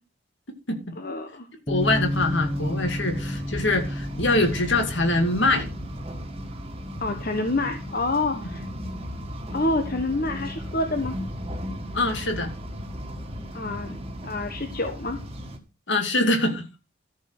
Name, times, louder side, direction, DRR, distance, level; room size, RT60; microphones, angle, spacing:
voice 1, 1.0-1.5 7.0-8.6 9.5-11.2 13.5-14.0 14.2-15.2, left 2 dB, 45° left, 5 dB, 1.3 m, -27 dB
voice 2, 1.7-5.7 11.9-12.5 15.9-16.6, left 2 dB, 60° left, 6 dB, 2.3 m, -23 dB
Bass guitar, 1.7-7.9, equal, 20° left, 1.6 m, -33 dB
sound 1, 1.8-15.6, equal, 30° right, 1.7 m, -36 dB
13.5 x 5.4 x 6.1 m, 0.30 s
head